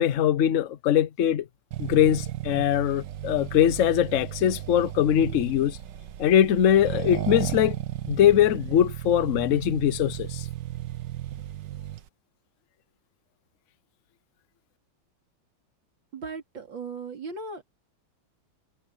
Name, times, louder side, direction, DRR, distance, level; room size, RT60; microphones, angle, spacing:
voice 1, 0.0-1.4 1.8-5.8 6.2-7.7 8.1-10.4, left 10 dB, 55° left, 1.0 m, -22 dB
Accelerating revving vroom, 1.7-12.1, right 12 dB, 70° right, 1.6 m, -34 dB
voice 2, 16.1-17.7, right 4 dB, 90° right, 4.0 m, -37 dB
omnidirectional pair, 2.0 m